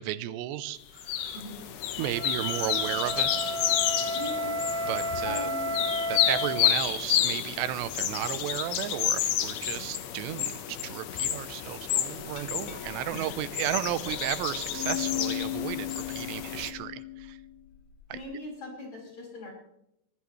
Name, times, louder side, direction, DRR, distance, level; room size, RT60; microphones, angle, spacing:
voice 1, 0.0-1.4 2.0-3.3 4.9-5.5 6.1-17.4 18.1-18.2, right 13 dB, 90° right, 13 dB, 2.9 m, -34 dB
sound 1, 1.0-16.7, left 10 dB, 70° left, 2.9 m, -30 dB
voice 2, 1.3-1.6 4.1-4.6 5.2-5.7 13.1-13.3 18.1-19.5, left 1 dB, 25° left, -2 dB, 6.5 m, -40 dB
Wind instrument woodwind instrument, 2.0-6.7, equal, 60° right, 2.5 m, -32 dB
Glass, 12.2-18.2, left 12 dB, 55° left, 2.8 m, -38 dB
22.5 x 14.5 x 3.2 m, 0.79 s
omnidirectional pair, 4.9 m